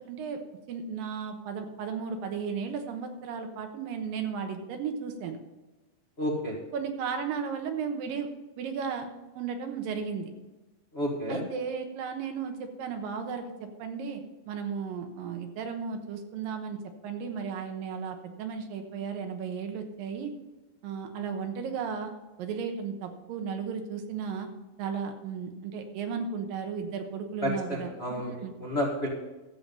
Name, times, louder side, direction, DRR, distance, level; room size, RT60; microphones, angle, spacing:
voice 1, 0.1-0.4 0.7-5.4 6.7-8.3 8.6-9.1 9.3-10.3 11.3-14.2 14.5-20.3 20.8-22.1 22.4-24.5 24.8-27.9 28.3-28.5, right 6 dB, 80° right, 5 dB, 2.8 m, -34 dB
voice 2, 6.2-6.5 10.9-11.4 27.4-28.3 28.6-29.1, equal, 70° left, -4 dB, 0.6 m, -30 dB
12.5 x 7.7 x 5.5 m, 1.1 s
omnidirectional pair, 4.1 m